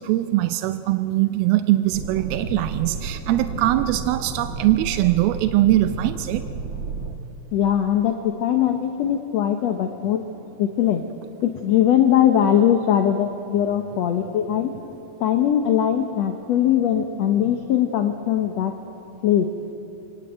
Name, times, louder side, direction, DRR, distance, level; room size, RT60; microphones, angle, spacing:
voice 1, 0.0-6.5, right 15 dB, 90° right, 9 dB, 2.6 m, -21 dB
sound 1, 1.9-7.2, right 3 dB, 50° right, 2.3 m, -32 dB
voice 2, 7.5-10.2 10.6-11.0 11.6-14.7 15.2-18.7 19.2-19.5, left 10 dB, 65° left, 6 dB, 1.7 m, -20 dB
26.5 x 18.5 x 9.2 m, 2.8 s
omnidirectional pair, 4.2 m